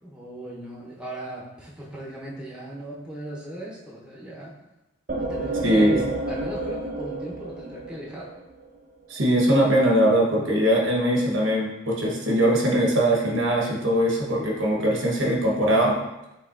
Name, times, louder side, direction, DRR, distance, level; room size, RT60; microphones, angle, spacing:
voice 1, 0.0-4.5 5.2-8.3, right 1 dB, 5° right, -5 dB, 0.8 m, -37 dB
sound 1, 5.1-8.7, right 2 dB, 45° right, 0.5 m, -30 dB
voice 2, 5.6-6.0 9.1-16.0, right 1 dB, 80° right, -1 dB, 1.0 m, -21 dB
5.3 x 3.5 x 2.4 m, 0.93 s
head